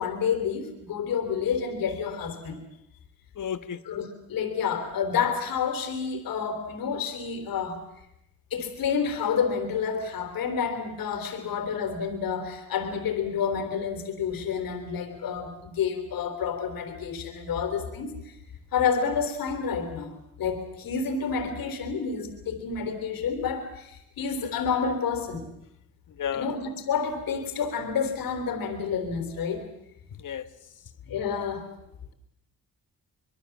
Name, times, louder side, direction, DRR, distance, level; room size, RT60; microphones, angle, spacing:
voice 1, 0.0-2.6 3.9-7.8 8.5-18.4 18.7-20.1 20.4-25.5 26.3-29.7 31.1-31.7, left 6 dB, 85° left, 7 dB, 3.4 m, -29 dB
voice 2, 3.4-3.8 26.2-26.5 30.2-30.5, left 8 dB, 65° left, 12 dB, 1.5 m, -32 dB
25.5 x 22.0 x 7.2 m, 0.82 s
cardioid pair, 65°, 34 cm